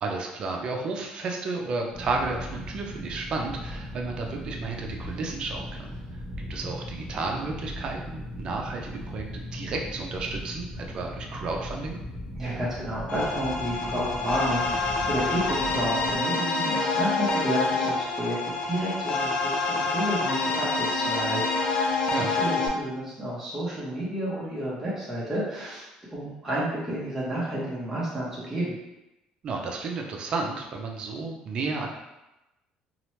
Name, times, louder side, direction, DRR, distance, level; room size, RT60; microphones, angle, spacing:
voice 1, 0.0-12.0 22.1-22.3 29.4-31.9, right 3 dB, 40° right, 1 dB, 0.4 m, -32 dB
sound 1, 1.9-16.2, left 1 dB, 30° left, 1.0 m, -38 dB
voice 2, 12.4-25.9 26.1-28.8, right 1 dB, 10° right, -8 dB, 0.7 m, -31 dB
sound 2, 13.1-22.7, left 3 dB, 50° left, 0.4 m, -27 dB
2.8 x 2.0 x 3.0 m, 0.96 s
cardioid pair, 145°, 2 cm